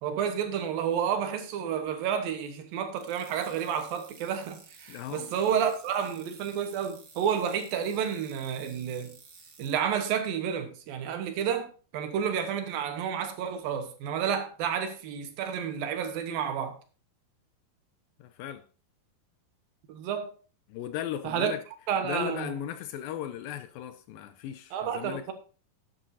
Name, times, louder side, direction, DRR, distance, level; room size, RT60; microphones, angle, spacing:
voice 1, 0.0-9.1 9.6-16.8 19.9-20.3 21.2-21.5 21.9-22.5 24.7-25.3, right 8 dB, 75° right, 2.8 m, -30 dB
sound 1, 3.0-9.8, right 4 dB, 55° right, 1.1 m, -54 dB
voice 2, 4.9-5.3 18.2-18.6 20.7-21.6 22.0-25.3, left 10 dB, 80° left, 2.2 m, -37 dB
11.0 x 10.0 x 2.7 m
omnidirectional pair, 4.4 m